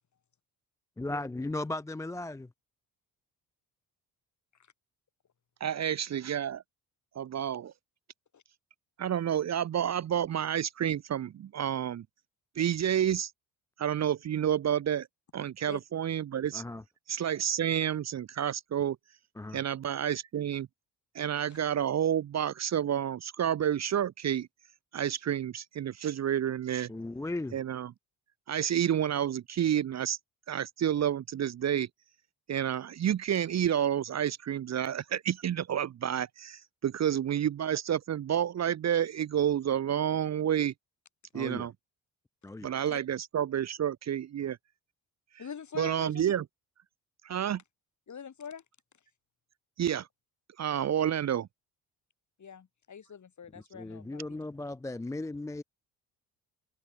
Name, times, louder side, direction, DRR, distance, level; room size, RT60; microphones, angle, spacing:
voice 1, 1.0-2.5 16.5-16.8 19.4-19.6 26.9-27.6 41.3-41.7 42.4-42.7 53.7-55.6, left 2 dB, 10° left, 0.4 m, -36 dB
voice 2, 5.6-6.6 7.2-7.7 9.0-12.0 12.6-13.3 13.8-15.1 15.3-16.6 17.1-19.0 19.5-20.7 21.1-24.5 24.9-26.9 27.5-27.9 28.5-30.2 30.5-31.9 32.5-40.7 41.3-41.7 42.6-44.6 45.8-46.4 47.2-47.6 49.8-50.1 50.6-51.5, right 9 dB, 45° right, 0.7 m, -29 dB
voice 3, 45.4-46.2 48.1-48.6 52.4-54.4, left 7 dB, 45° left, 3.7 m, -44 dB
supercardioid pair, 70°, 39 cm